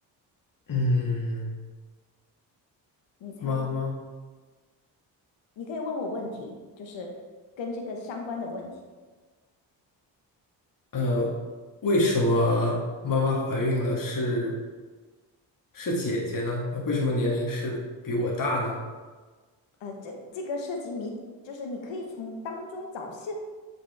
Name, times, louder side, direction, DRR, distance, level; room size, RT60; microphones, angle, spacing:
voice 1, 0.7-1.5 3.4-4.0 10.9-11.3 11.8-14.5 15.7-17.8 18.0-18.8, left 1 dB, 45° left, -2 dB, 1.9 m, -26 dB
voice 2, 3.2-3.6 5.6-7.1 7.6-8.7 19.8-21.1 21.4-23.3, left 3 dB, 70° left, 2 dB, 1.3 m, -35 dB
7.4 x 5.1 x 3.5 m, 1.4 s
supercardioid pair, 55°, 47 cm